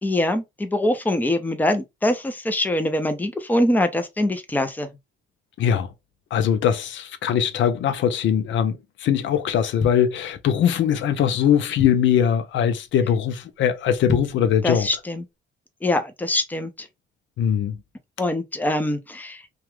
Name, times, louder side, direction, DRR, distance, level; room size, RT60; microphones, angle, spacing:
voice 1, 0.0-4.9 14.6-15.2 15.8-16.9 18.2-19.4, left 1 dB, 10° left, 0.6 m, -23 dB
voice 2, 5.6-5.9 6.3-14.9 17.4-17.8, left 9 dB, 70° left, 0.6 m, -21 dB
sound 1, 9.8-10.8 11.3-11.4 11.5-12.3 12.7-13.0 13.3-13.4 13.9-14.5 15.0-15.1, left 4 dB, 35° left, 0.9 m, -31 dB
2.9 x 2.3 x 3.1 m
cardioid pair, 90°, 20 cm